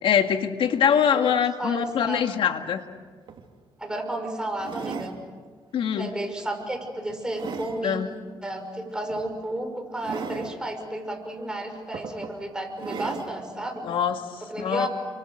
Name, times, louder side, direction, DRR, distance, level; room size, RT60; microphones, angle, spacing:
voice 1, 0.0-2.8 5.7-6.1 7.8-8.1 13.8-14.9, left 8 dB, 70° left, 7 dB, 1.9 m, -23 dB
voice 2, 1.6-2.2 3.8-5.2 6.0-8.0 8.4-13.9 14.5-14.9, right 1 dB, 10° right, 4 dB, 5.9 m, -32 dB
sound 1, 2.9-3.0 3.3-3.5 4.6-5.2 5.8-6.1 6.6-7.8 9.1-9.3 10.0-10.5 11.4-11.5 11.9-12.4 12.8-13.3 14.1-14.2, right 6 dB, 60° right, 3.1 m, -37 dB
30.0 x 25.5 x 6.6 m, 1.5 s
cardioid pair, 90°, 9 cm